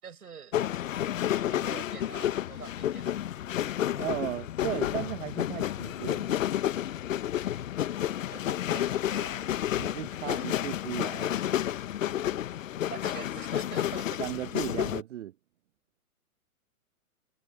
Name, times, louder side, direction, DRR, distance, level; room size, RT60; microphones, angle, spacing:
voice 1, 0.0-0.6 1.5-3.2 8.3-9.5 10.3-10.5 12.9-14.3, right 6 dB, 80° right, 6.5 m, -45 dB
sound 1, 0.5-15.0, left 11 dB, 60° left, 1.1 m, -31 dB
voice 2, 3.9-6.4 9.8-11.4 14.2-15.3, right 12 dB, 55° right, 1.0 m, -36 dB
hypercardioid pair, 130°, 44 cm